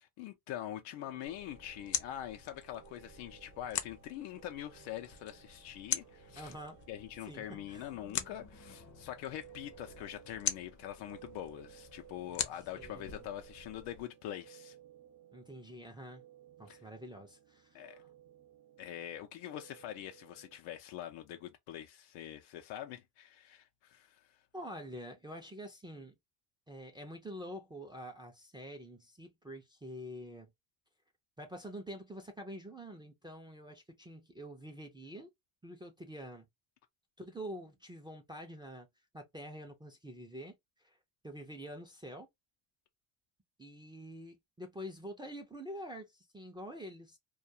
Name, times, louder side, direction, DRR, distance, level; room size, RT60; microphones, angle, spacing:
voice 1, 0.0-6.5 6.9-14.8 16.7-16.8 17.7-18.0 18.8-24.4, left 11 dB, 90° left, 0.6 m, -44 dB
sound 1, 0.9-20.6, right 11 dB, 55° right, 0.8 m, -59 dB
sound 2, 1.3-14.0, left 9 dB, 40° left, 0.5 m, -43 dB
voice 2, 6.4-6.8 7.2-7.9 12.8-13.2 15.3-16.2 16.6-18.1 24.5-26.1 26.7-30.5 31.4-35.3 35.6-36.5 37.2-38.9 39.1-40.6 40.8-41.0 41.2-42.3 43.6-47.2, equal, 10° right, 0.4 m, -46 dB
2.3 x 2.3 x 2.6 m
cardioid pair, 110°, 47 cm